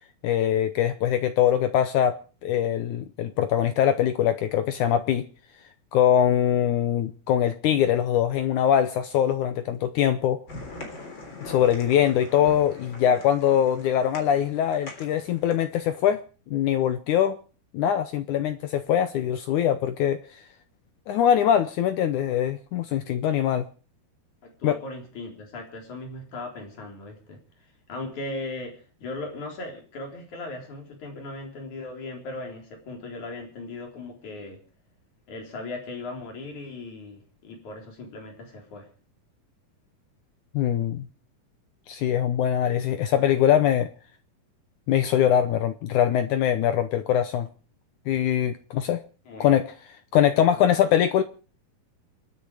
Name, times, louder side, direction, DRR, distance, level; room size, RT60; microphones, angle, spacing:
voice 1, 0.2-2.1 2.4-5.3 5.9-10.4 11.4-16.2 16.5-17.4 17.7-20.2 21.1-23.6 24.6-24.8 40.5-41.1 41.9-43.9 44.9-47.5 48.1-49.0 49.4-49.7 50.1-51.2, left 10 dB, 75° left, 1.8 m, -22 dB
sound 1, 10.5-15.8, left 2 dB, 30° left, 4.0 m, -42 dB
voice 2, 24.4-27.4 27.9-34.6 35.3-38.9 49.2-49.5 50.5-50.7, left 2 dB, 50° left, 5.1 m, -38 dB
28.0 x 9.5 x 4.8 m
omnidirectional pair, 4.4 m